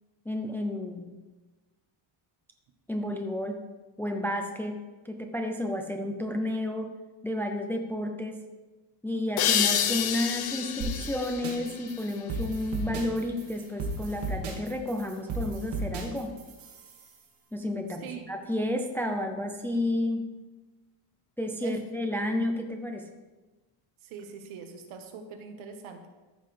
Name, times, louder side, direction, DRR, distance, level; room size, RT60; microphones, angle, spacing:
voice 1, 0.3-1.1 2.9-3.6 4.0-4.8 5.0-6.9 7.2-8.4 9.0-16.3 17.5-20.3 21.4-23.1, left 1 dB, 5° left, 4 dB, 0.4 m, -31 dB
sound 1, 9.4-12.8, left 9 dB, 75° left, 0.9 m, -29 dB
sound 2, 10.8-17.1, right 2 dB, 60° right, 2.3 m, -35 dB
voice 2, 24.0-26.1, right 6 dB, 75° right, 5 dB, 1.5 m, -42 dB
14.0 x 6.6 x 3.4 m, 1.2 s
cardioid pair, 165°, 49 cm